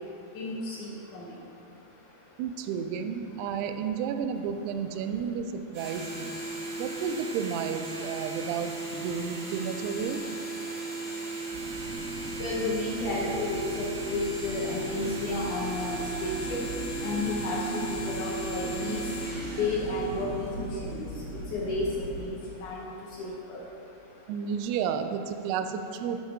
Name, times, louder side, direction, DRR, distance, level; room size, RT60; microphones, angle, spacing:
voice 1, 0.4-1.3 12.4-16.6 17.0-19.0 19.6-21.1 21.5-21.9 22.2-22.4 22.6-22.9 23.2-23.6, left 2 dB, 70° left, -4 dB, 1.9 m, -32 dB
voice 2, 2.4-6.4 6.8-10.2 24.3-26.2, right 7 dB, 90° right, 7 dB, 2.6 m, -32 dB
sound 1, 5.7-21.0, right 2 dB, 50° right, 2.5 m, -36 dB
sound 2, 11.5-22.2, right 1 dB, 70° right, 2.6 m, -39 dB
10.0 x 5.6 x 4.9 m, 2.7 s
omnidirectional pair, 4.6 m